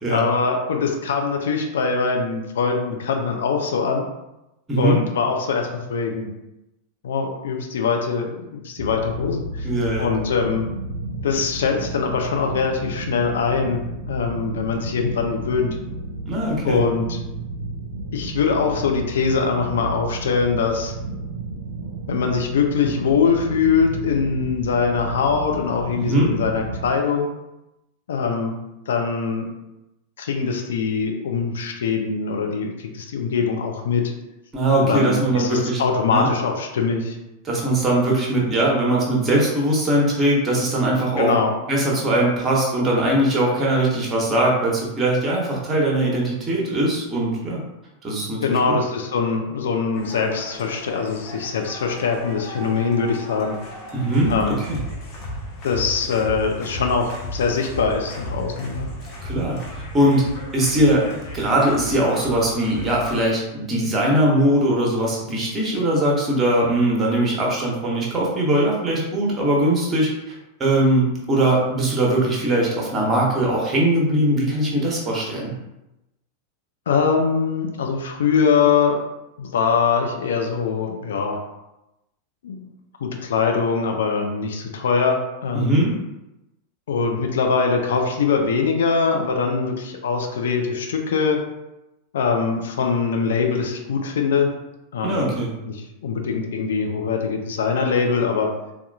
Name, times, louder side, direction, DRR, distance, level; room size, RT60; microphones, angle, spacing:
voice 1, 0.1-4.1 4.8-6.3 7.0-9.7 10.0-10.6 11.2-15.8 16.6-17.2 18.1-20.9 22.1-27.3 28.1-28.6 28.9-29.5 30.2-34.1 34.8-37.2 41.2-41.5 48.4-53.5 54.3-54.6 55.6-58.9 76.9-79.0 79.4-81.4 82.4-82.7 83.0-85.8 86.9-91.4 92.1-94.5 94.9-95.3 95.7-98.5, left 5 dB, 60° left, 3 dB, 0.4 m, -22 dB
voice 2, 4.7-5.0 9.6-10.1 16.2-16.8 25.9-26.3 34.5-35.8 36.1-36.3 37.4-41.3 41.7-47.6 48.0-48.8 53.9-54.8 59.2-70.3 70.6-75.5 85.5-85.9 95.0-95.5, right 1 dB, 20° right, -3 dB, 1.0 m, -21 dB
sound 1, 8.8-26.9, right 2 dB, 60° right, 0.4 m, -32 dB
sound 2, 49.9-63.2, equal, 35° left, 0.7 m, -35 dB
4.0 x 2.4 x 2.3 m, 0.94 s
figure-of-eight pair, 90°, 0 cm